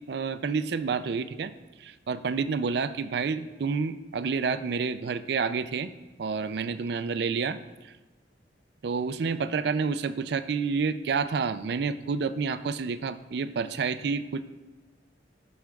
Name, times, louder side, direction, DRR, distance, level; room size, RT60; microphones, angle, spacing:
voice 1, 0.1-1.5 1.8-5.9 6.2-7.6 7.8-7.9 8.8-14.4, right 5 dB, 60° right, 13 dB, 0.4 m, -29 dB
14.5 x 6.3 x 2.4 m, 1.2 s
head